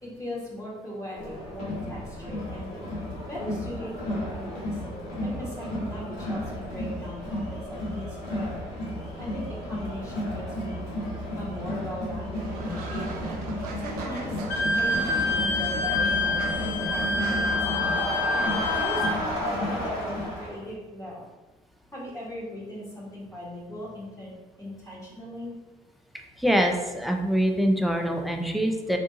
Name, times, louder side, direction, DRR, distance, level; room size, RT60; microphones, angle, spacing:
voice 1, 0.0-2.7 3.3-4.8 5.2-8.6 9.2-10.9 11.4-13.3 13.8-14.4 14.8-17.9 18.5-21.2 21.9-24.3 24.6-25.5, equal, 15° left, -6 dB, 1.3 m, -39 dB
Crowd, 1.1-20.6, left 1 dB, 75° left, 1.0 m, -32 dB
Fowl, 12.3-17.6, right 3 dB, 85° right, 0.6 m, -38 dB
Wind instrument woodwind instrument, 14.5-19.2, left 2 dB, 60° left, 0.6 m, -27 dB
voice 2, 26.4-29.0, equal, ahead, 3 dB, 0.5 m, -24 dB
3.4 x 2.7 x 2.6 m, 1.2 s
hypercardioid pair, 50°, 19 cm